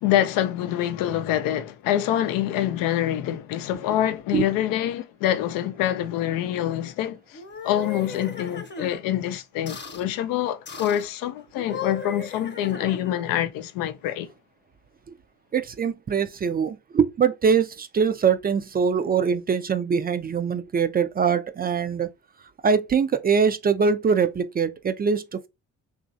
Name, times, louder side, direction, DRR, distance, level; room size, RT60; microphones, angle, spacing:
voice 1, 0.0-14.3, left 12 dB, 90° left, 0.5 m, -26 dB
sound 1, 7.3-9.0 9.7-10.1 10.7-11.1 11.5-13.3, left 5 dB, 35° left, 0.8 m, -37 dB
voice 2, 15.5-22.1 22.6-25.5, right 6 dB, 30° right, 0.3 m, -23 dB
2.9 x 2.4 x 2.6 m
supercardioid pair, 65°, 33 cm